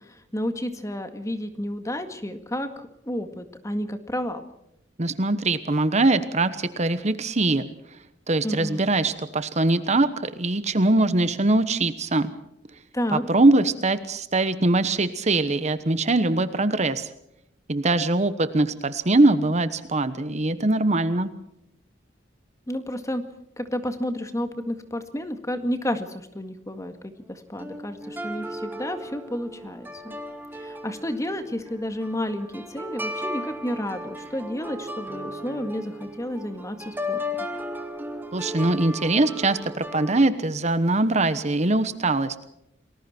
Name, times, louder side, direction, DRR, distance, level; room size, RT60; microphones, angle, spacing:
voice 1, 0.0-4.4 8.4-8.8 12.9-13.2 22.7-23.2 23.6-30.1 30.5-37.2, left 1 dB, 15° left, 8 dB, 1.9 m, -31 dB
voice 2, 5.0-7.7 8.3-12.3 13.1-17.1 17.7-21.3 38.3-42.4, right 2 dB, 40° right, 12 dB, 1.1 m, -22 dB
sound 1, 27.6-40.2, left 1 dB, 10° right, 2.3 m, -36 dB
29.5 x 20.5 x 4.5 m, 0.79 s
head